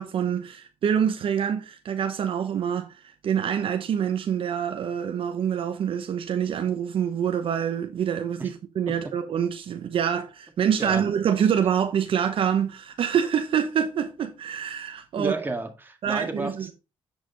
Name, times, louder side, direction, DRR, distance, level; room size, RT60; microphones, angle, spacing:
voice 1, 0.0-15.4 16.0-16.7, right 8 dB, 60° right, 0.9 m, -26 dB
voice 2, 15.1-16.7, right 2 dB, 20° right, 1.9 m, -31 dB
8.2 x 5.2 x 3.9 m
supercardioid pair, 70°, 10 cm